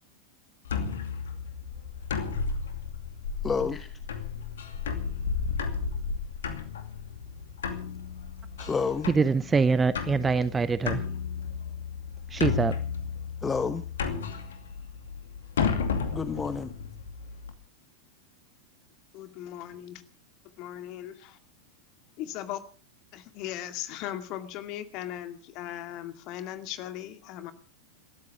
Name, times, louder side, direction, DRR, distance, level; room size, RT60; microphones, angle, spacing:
sound 1, 0.7-17.5, left 6 dB, 65° left, 2.5 m, -33 dB
voice 1, 3.4-4.0 8.6-9.1 13.4-13.8 16.1-16.7, left 5 dB, 15° left, 1.0 m, -29 dB
voice 2, 9.1-11.0 12.3-12.7, right 4 dB, 15° right, 0.8 m, -24 dB
voice 3, 19.1-20.0 20.6-21.4 22.2-22.6 23.1-27.5, left 12 dB, 40° left, 2.3 m, -38 dB
28.0 x 13.5 x 3.6 m
figure-of-eight pair, 90°, 0 cm